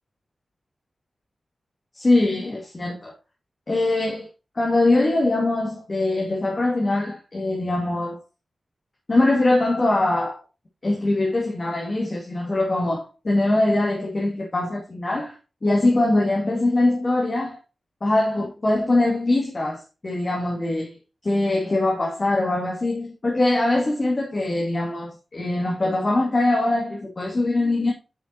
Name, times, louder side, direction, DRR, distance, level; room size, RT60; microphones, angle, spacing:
voice 1, 1.9-3.1 3.7-4.3 4.5-8.2 9.1-10.4 10.8-15.4 15.6-17.6 18.0-21.0 21.2-27.9, left 2 dB, 40° left, 2.3 m, -22 dB
9.5 x 7.2 x 2.9 m
wide cardioid pair, 120°, 0 cm